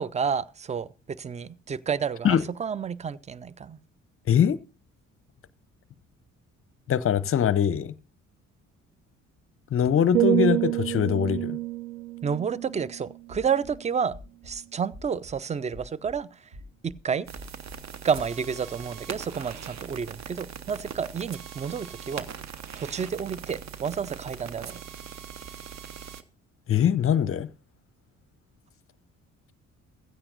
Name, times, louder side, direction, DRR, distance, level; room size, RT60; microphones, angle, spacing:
voice 1, 0.0-3.8 12.2-14.2 14.4-16.3 16.8-17.3 18.0-22.3 22.8-24.8, right 6 dB, 20° right, 0.5 m, -30 dB
voice 2, 4.3-4.6 6.9-7.9 9.7-11.6 26.7-27.5, left 8 dB, 35° left, 0.7 m, -22 dB
sound 1, 10.1-14.1 14.5-14.8, right 15 dB, 75° right, 0.5 m, -29 dB
sound 2, 13.3-13.7 14.1-14.5 14.9-15.3 15.7-16.1 16.5-16.9 17.3-17.7 18.1-18.3, left 1 dB, 60° right, 2.8 m, -45 dB
sound 3, 17.3-26.2, right 8 dB, 45° right, 1.0 m, -41 dB
15.5 x 13.5 x 2.6 m
figure-of-eight pair, 45°, 39 cm